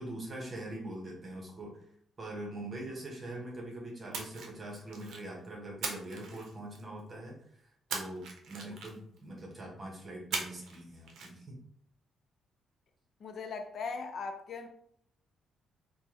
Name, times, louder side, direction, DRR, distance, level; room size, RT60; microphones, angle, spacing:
voice 1, 0.0-1.8 2.2-11.6, right 1 dB, 35° right, -2 dB, 1.0 m, -43 dB
Splash splatter, 4.1-5.3 5.8-7.0 7.9-9.2 10.3-10.8 11.1-11.3, right 4 dB, 75° right, 0.6 m, -39 dB
voice 2, 13.2-14.7, left 4 dB, 55° left, 5 dB, 0.5 m, -39 dB
3.3 x 2.2 x 2.9 m, 0.67 s
cardioid pair, 90°, 0 cm